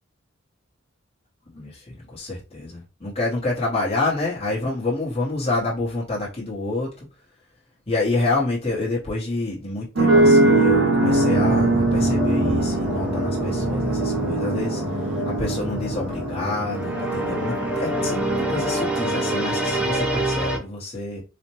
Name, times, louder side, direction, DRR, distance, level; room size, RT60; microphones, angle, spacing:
voice 1, 1.5-7.1 7.9-18.2 18.5-21.2, left 2 dB, 30° left, 1.0 m, -28 dB
sound 1, 10.0-20.0, right 2 dB, 75° right, 0.9 m, -22 dB
sound 2, 11.0-20.6, equal, 5° right, 0.6 m, -27 dB
4.2 x 2.1 x 2.9 m
head